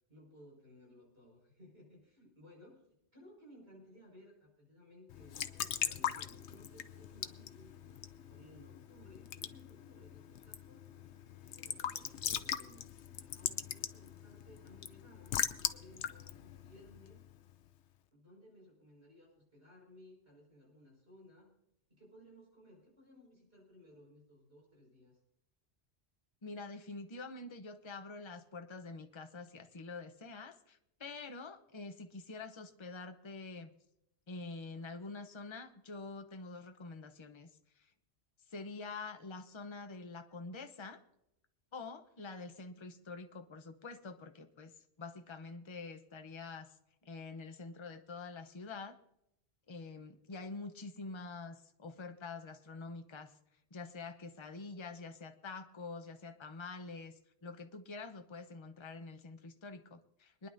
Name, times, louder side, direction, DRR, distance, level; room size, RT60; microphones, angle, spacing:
voice 1, 0.1-2.9 3.1-8.0 8.3-10.8 11.4-12.8 13.3-17.3 18.1-21.5 21.9-25.2, left 1 dB, 65° right, -3 dB, 5.9 m, -59 dB
Raindrop / Drip / Trickle dribble, 5.1-17.6, left 10 dB, 85° left, 1.0 m, -41 dB
voice 2, 26.4-33.7 34.3-37.5 37.8-37.9 38.5-41.0 41.7-46.7 47.0-49.0 49.7-53.3 53.7-60.5, left 3 dB, 30° left, 7 dB, 0.8 m, -46 dB
25.5 x 10.5 x 2.7 m, 0.81 s
omnidirectional pair, 1.1 m